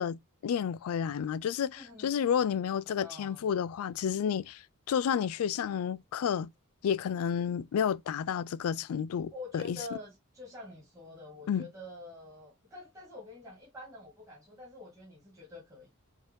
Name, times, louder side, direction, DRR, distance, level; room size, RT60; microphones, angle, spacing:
voice 1, 0.0-6.5 6.8-9.8 11.5-11.7, left 8 dB, 75° left, 0.3 m, -31 dB
voice 2, 1.7-2.1 2.9-3.5 9.3-15.9, left 2 dB, 15° right, 1.7 m, -46 dB
4.9 x 2.8 x 3.0 m
head